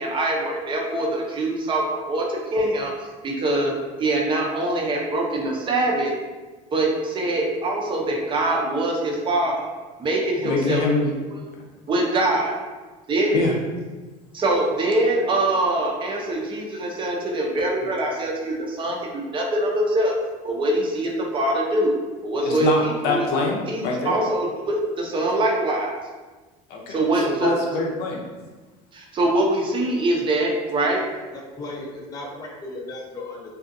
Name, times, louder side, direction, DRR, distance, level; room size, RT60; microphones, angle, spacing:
voice 1, 0.0-2.9 3.2-3.7 4.0-6.1 6.7-9.7 10.0-10.8 11.3-11.4 11.9-12.6 13.1-13.4 14.3-19.0 19.3-20.1 20.4-21.9 22.2-23.3 23.7-25.9 26.9-27.5 28.9-31.0, right 1 dB, 25° right, -1 dB, 0.6 m, -23 dB
voice 2, 10.4-11.1 13.3-13.5 22.4-24.2 26.7-28.2, left 3 dB, 65° left, -1 dB, 0.7 m, -24 dB
voice 3, 31.6-33.5, left 2 dB, 20° left, -2 dB, 0.5 m, -35 dB
2.5 x 2.4 x 2.5 m, 1.3 s
supercardioid pair, 110°, 18 cm